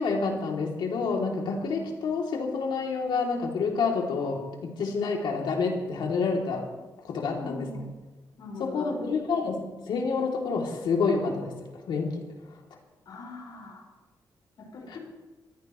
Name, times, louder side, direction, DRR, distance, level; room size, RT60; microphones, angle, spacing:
voice 1, 0.0-6.7 7.0-7.7 8.6-11.5 11.9-12.2, left 4 dB, 85° left, 0 dB, 3.1 m, -28 dB
voice 2, 7.2-7.9 8.4-9.0 13.1-13.9 14.6-15.0, left 2 dB, 65° left, -2 dB, 5.6 m, -41 dB
23.0 x 15.0 x 3.2 m, 1.2 s
wide cardioid pair, 145°, 8 cm